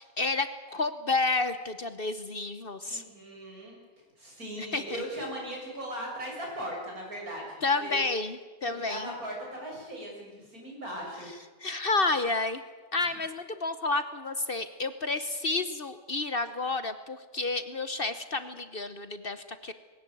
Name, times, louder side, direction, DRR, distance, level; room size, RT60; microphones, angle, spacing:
voice 1, 0.0-3.0 4.6-5.0 7.6-9.1 11.6-12.6 12.9-19.7, left 3 dB, 45° left, 11 dB, 1.0 m, -30 dB
voice 2, 2.9-3.8 4.2-8.0 8.7-11.3, right 1 dB, 80° right, -1 dB, 7.0 m, -38 dB
20.5 x 18.0 x 9.2 m, 1.3 s
omnidirectional pair, 1.5 m